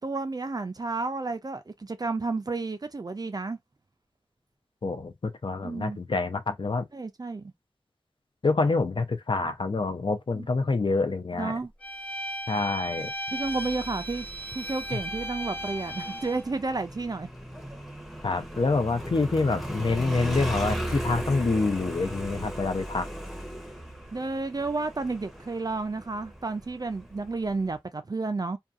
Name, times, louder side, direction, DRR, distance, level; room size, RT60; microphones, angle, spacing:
voice 1, 0.0-3.6 5.6-6.0 6.9-7.5 10.3-10.5 11.3-11.7 13.3-14.3 14.5-17.3 24.1-28.6, right 3 dB, 45° right, 0.3 m, -31 dB
voice 2, 4.8-6.8 8.4-11.5 12.5-13.1 18.2-23.1, left 3 dB, 60° left, 0.5 m, -27 dB
Bowed string instrument, 11.8-16.4, equal, 15° left, 1.0 m, -36 dB
Motorcycle, 13.4-27.7, right 1 dB, ahead, 0.7 m, -37 dB
2.7 x 2.2 x 2.4 m
wide cardioid pair, 60°, 10 cm